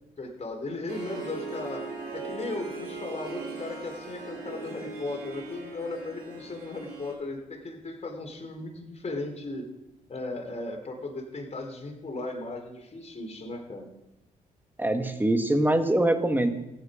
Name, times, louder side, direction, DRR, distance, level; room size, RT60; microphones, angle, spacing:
voice 1, 0.2-1.8 2.1-9.6 10.1-13.9, left 2 dB, 40° left, 2 dB, 3.5 m, -36 dB
Harp, 0.9-7.1, right 3 dB, 75° right, 4.2 m, -39 dB
voice 2, 14.8-16.5, right 1 dB, 10° right, 7 dB, 1.7 m, -23 dB
15.0 x 9.7 x 5.1 m, 0.94 s
supercardioid pair, 60°, 17 cm